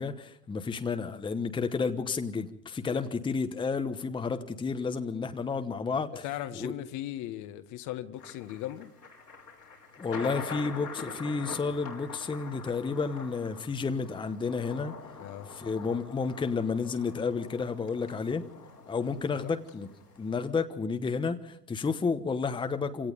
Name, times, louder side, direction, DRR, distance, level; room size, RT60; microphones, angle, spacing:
voice 1, 0.0-6.2 6.5-6.7 10.0-14.9 15.5-18.5 18.9-23.1, left 4 dB, 10° left, 1.1 m, -31 dB
voice 2, 6.2-8.9 15.2-15.5 19.3-19.6, left 13 dB, 40° left, 1.3 m, -38 dB
Thunder, 8.2-20.5, left 4 dB, 90° left, 4.5 m, -45 dB
27.5 x 17.5 x 5.3 m
figure-of-eight pair, 90°, 47 cm